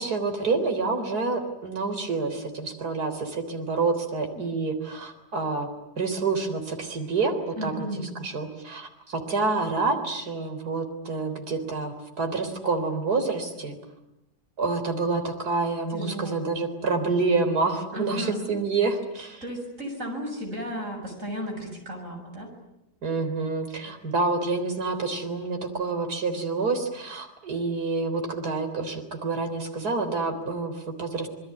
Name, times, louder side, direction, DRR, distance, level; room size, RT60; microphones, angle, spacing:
voice 1, 0.0-5.7 6.0-13.8 14.6-19.4 23.0-31.3, right 3 dB, 65° right, 6 dB, 4.3 m, -28 dB
voice 2, 7.6-8.1 15.9-16.4 17.9-18.4 19.4-22.5, equal, 50° right, 3 dB, 7.4 m, -34 dB
27.5 x 21.5 x 9.7 m, 0.85 s
omnidirectional pair, 1.8 m